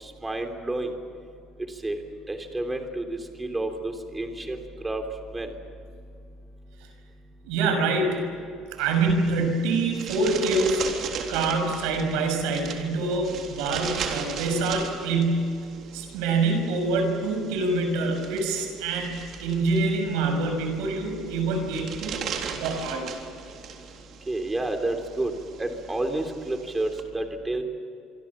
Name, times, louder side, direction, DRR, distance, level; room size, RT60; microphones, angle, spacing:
voice 1, 0.2-0.9 1.8-2.0 2.3-5.0 5.3-5.5 24.3-25.3 25.6-26.9 27.1-27.6, right 2 dB, 10° right, 5 dB, 3.4 m, -30 dB
voice 2, 7.5-8.2 8.8-10.8 11.3-15.6 15.9-22.2 22.6-23.1, right 3 dB, 90° right, 5 dB, 6.4 m, -25 dB
sound 1, 8.8-27.0, right 6 dB, 50° right, 3.6 m, -38 dB
26.0 x 24.5 x 7.4 m, 2.4 s
cardioid pair, 130°, 0 cm